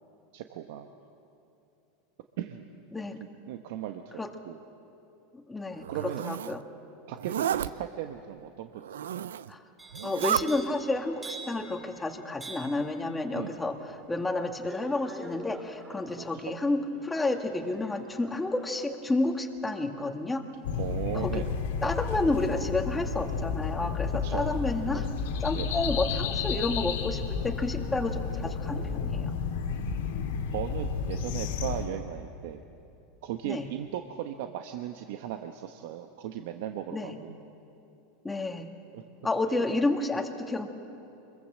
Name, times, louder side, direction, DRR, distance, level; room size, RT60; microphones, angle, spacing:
voice 1, 0.3-0.9 2.4-2.7 3.5-4.2 4.5-4.6 5.9-6.2 7.1-9.3 13.3-13.6 16.2-16.5 20.8-21.5 24.2-24.5 24.9-25.1 25.5-25.7 30.5-32.6 33.2-37.3 38.9-39.0 39.5-39.7, right 11 dB, 70° right, 6 dB, 1.1 m, -37 dB
voice 2, 5.3-6.6 9.5-9.6 10.0-20.5 21.1-21.4 21.8-25.1 25.4-29.3 33.5-33.7 36.9-37.2 38.2-38.7 39.2-40.7, left 2 dB, 10° left, 3 dB, 1.9 m, -30 dB
Zipper (clothing), 5.8-6.6 7.2-7.7 8.8-9.5 9.9-10.4, right 10 dB, 90° right, 0.5 m, -31 dB
sound 1, 9.8-21.7 22.1-22.5, right 2 dB, 10° right, 4.5 m, -48 dB
sound 2, 20.6-31.9, left 6 dB, 80° left, 2.1 m, -31 dB
25.0 x 22.5 x 7.4 m, 2.8 s
supercardioid pair, 115°, 0 cm